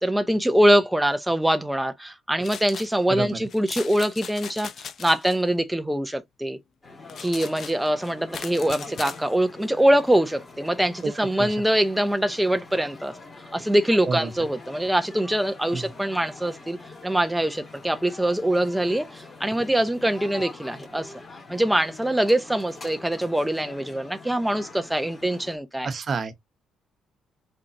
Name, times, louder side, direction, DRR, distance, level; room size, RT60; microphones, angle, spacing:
voice 1, 0.0-6.6 7.2-13.2 13.5-16.8 17.0-21.1 21.5-25.9, right 1 dB, 5° right, 0.7 m, -23 dB
sound 1, 2.4-2.9 3.5-5.4 7.1-9.2, left 7 dB, 55° left, 0.8 m, -38 dB
voice 2, 3.1-3.4 11.0-11.1 11.4-11.6 14.1-14.3 15.7-15.9 25.8-26.3, right 5 dB, 45° right, 1.0 m, -28 dB
sound 2, 6.8-25.6, left 3 dB, 25° left, 2.7 m, -44 dB
4.5 x 3.7 x 2.8 m
cardioid pair, 90°, 0 cm